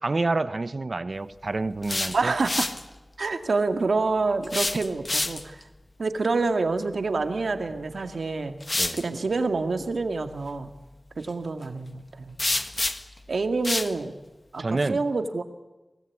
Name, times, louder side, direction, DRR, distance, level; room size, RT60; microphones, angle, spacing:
voice 1, 0.0-2.3 8.8-9.0 14.6-15.0, right 3 dB, 55° right, 14 dB, 1.0 m, -28 dB
sound 1, 1.6-2.8 4.4-5.6 7.7-7.8 8.6-9.0 12.4-13.2 13.6-13.9, left 2 dB, 40° left, 1.6 m, -28 dB
voice 2, 2.1-2.7 3.2-5.6 6.0-8.6 8.9-10.7 11.2-12.4 13.3-14.2 14.5-15.4, right 3 dB, 85° right, 7 dB, 2.1 m, -27 dB
25.5 x 18.5 x 8.6 m, 1.1 s
wide cardioid pair, 55°, 0 cm